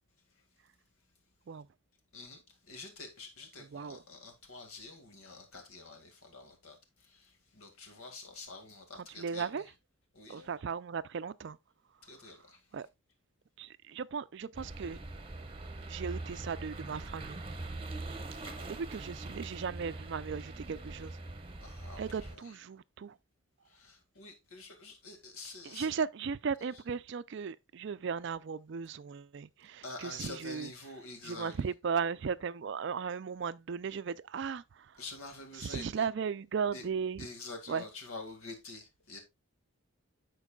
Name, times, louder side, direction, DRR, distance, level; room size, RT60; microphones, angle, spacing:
voice 1, 2.1-9.7 10.1-10.5 12.0-12.6 18.4-18.7 21.6-22.6 23.7-25.9 26.7-26.8 29.8-31.6 35.0-36.1 36.7-36.9 37.2-39.2, left 3 dB, 85° left, 2.0 m, -47 dB
voice 2, 9.2-9.6 10.3-11.6 12.7-12.9 13.6-15.0 15.9-17.4 18.7-21.2 22.0-23.1 25.6-30.7 31.2-35.0 35.6-37.3 37.7-37.8, right 6 dB, 55° right, 0.4 m, -36 dB
sound 1, 14.5-22.4, right 2 dB, 25° right, 0.8 m, -43 dB
13.5 x 4.6 x 2.3 m
head